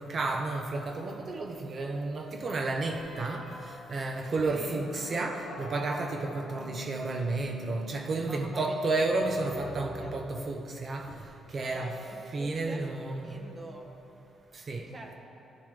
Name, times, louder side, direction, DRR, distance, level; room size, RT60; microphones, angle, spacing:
voice 1, 0.0-11.9 12.3-13.4 14.5-14.9, right 3 dB, 45° right, 3 dB, 0.7 m, -32 dB
sound 1, 2.8-10.6, equal, 60° left, 1.1 m, -46 dB
voice 2, 4.4-4.9 8.2-9.3 10.0-10.2 11.7-13.9 14.9-15.1, right 1 dB, 30° right, 1 dB, 1.2 m, -45 dB
13.5 x 7.0 x 3.3 m, 2.8 s
cardioid pair, 90°, 0 cm